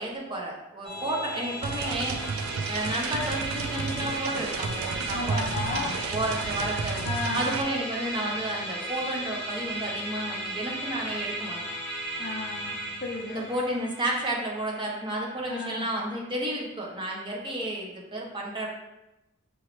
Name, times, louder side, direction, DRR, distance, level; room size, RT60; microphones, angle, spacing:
voice 1, 0.0-2.2 2.7-7.1 7.3-11.6 13.3-18.7, right 1 dB, 25° right, -2 dB, 0.9 m, -32 dB
Musical instrument, 0.8-16.4, right 1 dB, ahead, 1.0 m, -36 dB
sound 1, 1.6-7.6, right 5 dB, 90° right, 0.4 m, -32 dB
voice 2, 5.1-6.0 7.0-7.6 12.2-13.4 15.5-15.9, left 3 dB, 45° left, 1 dB, 0.6 m, -34 dB
5.4 x 3.0 x 3.1 m, 0.93 s
head